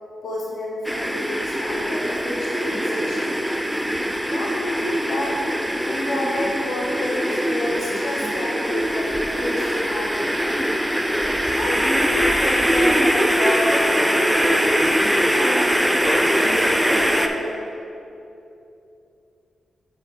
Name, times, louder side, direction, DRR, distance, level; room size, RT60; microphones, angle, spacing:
voice 1, 0.2-3.4 4.2-5.4 5.8-10.4 11.5-14.7 15.3-17.7, left 1 dB, 70° left, -3 dB, 0.9 m, -29 dB
sound 1, 0.8-17.3, equal, 5° right, 0.5 m, -22 dB
5.6 x 4.3 x 5.1 m, 2.8 s
supercardioid pair, 40°, 0 cm